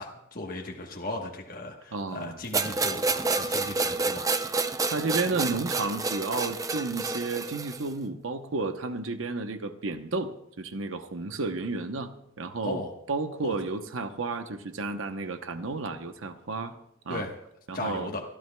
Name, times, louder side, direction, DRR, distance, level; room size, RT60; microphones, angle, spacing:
voice 1, 0.0-4.3 4.7-4.8 12.6-12.9 13.4-13.5 17.1-17.3 17.7-18.2, left 2 dB, 45° left, 1.2 m, -36 dB
voice 2, 1.9-2.4 4.9-12.8 13.1-16.7 17.1-17.3 17.7-18.1, right 3 dB, 90° right, 0.9 m, -32 dB
sound 1, 2.5-7.9, right 3 dB, 15° right, 0.4 m, -29 dB
29.5 x 12.5 x 2.3 m
head